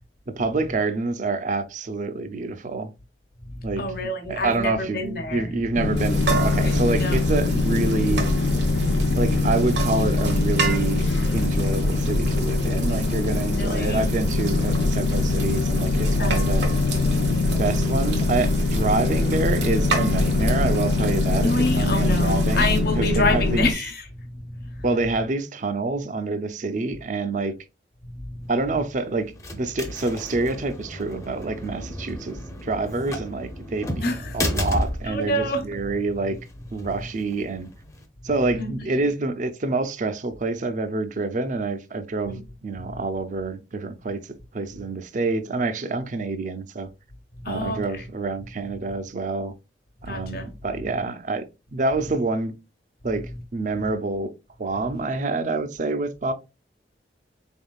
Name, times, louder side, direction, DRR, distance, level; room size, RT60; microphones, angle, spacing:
voice 1, 0.4-2.9 3.6-3.8 4.3-5.0 5.3-8.2 9.2-11.0 11.3-16.7 17.6-23.7 24.8-27.5 28.5-36.4 36.7-37.7 38.2-42.3 42.6-46.9 47.4-49.5 50.0-51.4 51.7-52.5 53.0-54.3 54.6-56.3, right 3 dB, 45° right, 0.5 m, -27 dB
voice 2, 3.5-5.5 6.6-7.2 13.6-14.0 16.2-16.6 21.4-24.8 28.0-28.5 34.0-34.4 35.1-35.8 38.6-39.1 42.2-42.4 42.8-43.0 47.3-48.0 50.0-50.5, left 2 dB, 60° left, 1.0 m, -28 dB
sound 1, 5.7-23.7, left 2 dB, 75° left, 0.5 m, -22 dB
sound 2, 6.0-22.8, right 5 dB, 90° right, 1.2 m, -33 dB
sound 3, 28.4-38.1, left 1 dB, 20° left, 0.6 m, -33 dB
4.2 x 3.6 x 2.3 m
head